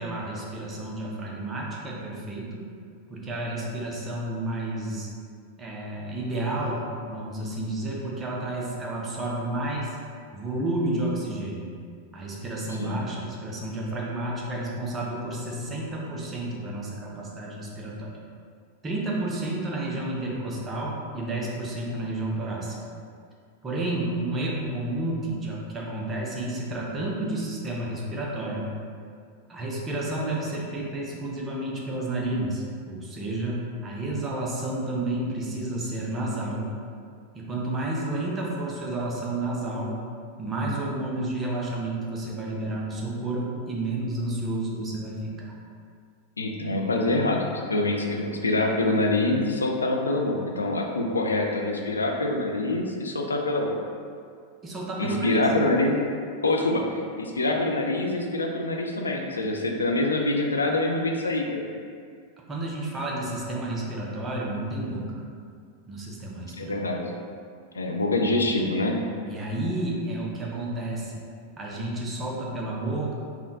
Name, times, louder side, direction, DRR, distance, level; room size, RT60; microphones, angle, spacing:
voice 1, 0.0-2.6 3.1-5.1 5.6-10.0 10.3-11.7 12.1-18.1 18.8-22.8 23.6-28.7 29.5-36.7 37.3-39.9 40.4-45.5 54.6-55.4 62.5-65.2 65.9-66.7 68.6-68.7 69.2-71.2 71.6-73.1, right 1 dB, 20° right, -4 dB, 0.6 m, -31 dB
voice 2, 46.4-47.4 47.7-53.8 55.0-56.0 56.4-61.6 66.6-67.1 67.7-69.0, left 2 dB, 75° left, 1 dB, 0.3 m, -25 dB
3.5 x 2.2 x 2.6 m, 2.2 s
figure-of-eight pair, 90°, 0 cm